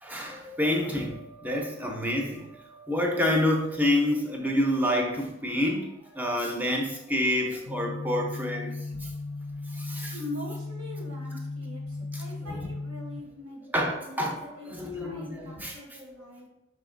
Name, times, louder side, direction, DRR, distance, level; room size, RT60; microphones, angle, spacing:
voice 1, 0.0-9.1 9.7-10.1 12.1-12.2 12.5-12.6 13.7-16.2, left 1 dB, 10° right, 1 dB, 0.6 m, -28 dB
sound 1, 7.7-13.2, left 2 dB, 45° left, 0.4 m, -36 dB
voice 2, 10.1-13.7 14.0-16.5, left 1 dB, 85° right, -1 dB, 1.3 m, -42 dB
4.9 x 3.9 x 2.5 m, 0.84 s
head